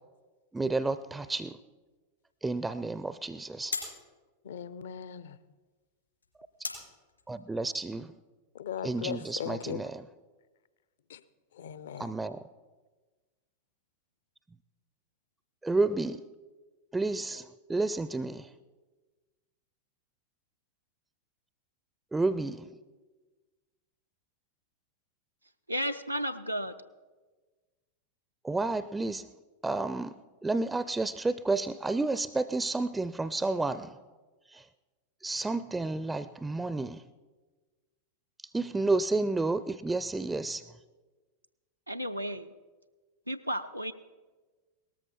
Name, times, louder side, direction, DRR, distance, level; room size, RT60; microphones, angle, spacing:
sound 1, 0.5-9.1, left 4 dB, 80° left, 3.9 m, -45 dB
voice 1, 0.5-1.6 2.4-3.8 7.3-8.1 8.8-10.0 12.0-12.4 15.6-16.2 16.9-18.5 22.1-22.7 28.4-29.3 29.6-30.2 30.4-33.9 34.5-34.7 35.2-37.0 38.4-40.6, right 3 dB, 10° right, 15 dB, 0.4 m, -31 dB
voice 2, 4.4-5.4 8.5-9.8 11.1-11.2 11.5-12.1, left 9 dB, 60° left, 16 dB, 0.6 m, -38 dB
voice 3, 25.7-26.8 41.9-42.5 43.3-43.9, equal, 90° right, 6 dB, 0.5 m, -33 dB
18.0 x 13.5 x 4.2 m, 1.3 s
figure-of-eight pair, 90°, 0 cm